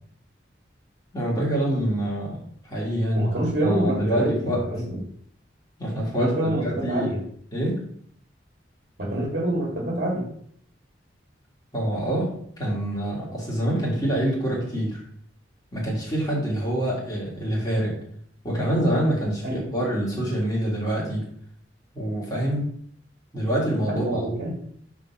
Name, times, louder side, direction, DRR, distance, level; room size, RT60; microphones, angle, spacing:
voice 1, 1.1-2.4 2.6-3.3 3.6-4.7 5.8-7.1 7.5-7.8 11.7-15.0 15.7-18.0 18.4-21.3 21.9-22.7 23.3-24.2, right 1 dB, 20° left, -5 dB, 1.8 m, -26 dB
voice 2, 3.1-5.0 6.2-7.2 9.0-10.3 19.4-19.6 23.9-24.5, right 1 dB, 55° right, -3 dB, 1.7 m, -26 dB
5.7 x 3.6 x 5.8 m, 0.63 s
head